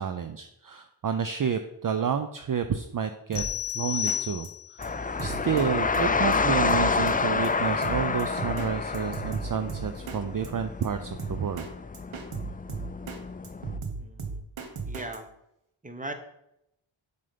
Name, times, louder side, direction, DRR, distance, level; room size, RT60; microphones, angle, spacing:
voice 1, 0.0-3.4 3.7-4.5 4.7-11.7, right 7 dB, 45° right, 8 dB, 0.6 m, -30 dB
Drum kit, 3.3-3.7 4.1-4.2 4.4-4.5 4.8-4.9 5.2-5.7 5.9-6.0 6.3-6.4 6.7-7.2 7.4-7.5 7.8-8.7 8.9-10.2 10.4-10.5 10.8-10.9 11.2-11.7 11.9-13.2 13.4-15.2, right 4 dB, 85° right, 1.3 m, -36 dB
sound 1, 3.4-4.9, left 10 dB, 55° left, 0.7 m, -31 dB
sound 2, 4.8-13.8, left 4 dB, 20° left, 0.3 m, -29 dB
voice 2, 14.0-14.4 14.8-15.3 15.8-16.1, right 2 dB, 15° right, 7 dB, 1.1 m, -38 dB
7.4 x 5.7 x 5.1 m, 0.80 s
wide cardioid pair, 95°, 49 cm